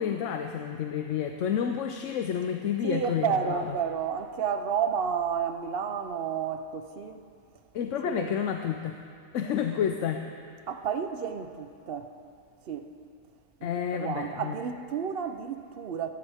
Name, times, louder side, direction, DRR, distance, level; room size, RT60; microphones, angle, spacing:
voice 1, 0.0-3.7 7.7-9.0 9.3-10.2 13.6-14.5, left 8 dB, 65° left, 0.9 m, -30 dB
voice 2, 2.8-7.2 8.0-8.3 10.7-12.1 12.7-12.9 13.6-16.1, right 7 dB, 50° right, 0.8 m, -31 dB
16.5 x 15.5 x 3.5 m
omnidirectional pair, 1.5 m